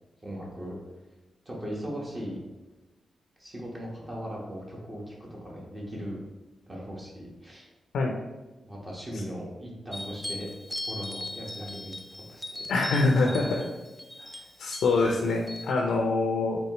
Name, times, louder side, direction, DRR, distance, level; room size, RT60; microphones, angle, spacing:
voice 1, 0.2-0.8 1.4-2.4 3.4-6.2 6.7-7.7 8.6-10.5 10.8-11.9 12.3-12.6 13.2-13.5 14.2-14.5, equal, 30° right, -4 dB, 1.2 m, -38 dB
sound 1, 9.9-15.7, left 2 dB, 5° left, 0.3 m, -39 dB
voice 2, 12.7-13.4 14.6-16.6, left 3 dB, 85° left, 1 dB, 0.4 m, -24 dB
4.2 x 3.2 x 3.0 m, 1.1 s
cardioid pair, 80°, 0 cm